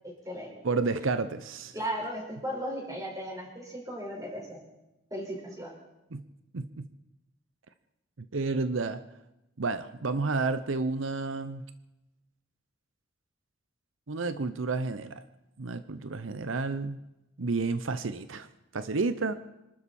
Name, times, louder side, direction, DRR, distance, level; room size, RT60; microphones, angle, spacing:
voice 1, 0.0-0.5 1.7-4.6 5.1-5.7, equal, 20° right, -1 dB, 5.1 m, -36 dB
voice 2, 0.6-1.7 6.1-6.2 6.5-6.9 8.2-9.0 9.6-11.6 14.1-15.2 15.6-17.0 17.4-18.5 18.7-19.3, right 3 dB, 90° right, 12 dB, 0.8 m, -30 dB
26.0 x 12.5 x 4.3 m, 0.95 s
head